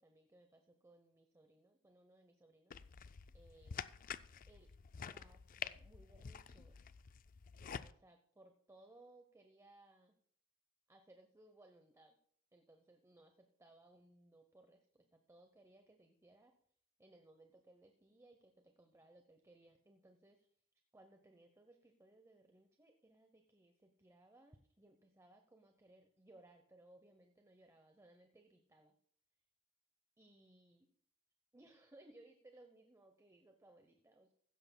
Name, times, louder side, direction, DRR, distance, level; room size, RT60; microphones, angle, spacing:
voice 1, 0.0-3.8 4.5-4.7 5.0-6.8 7.6-10.1 10.9-12.2 12.5-16.5 17.0-20.5 20.9-29.0 30.2-30.9 31.5-34.3, right 2 dB, 15° right, 5 dB, 0.8 m, -65 dB
sound 1, 2.7-7.9, left 7 dB, 40° left, 0.4 m, -49 dB
16.0 x 12.5 x 2.2 m, 0.63 s
head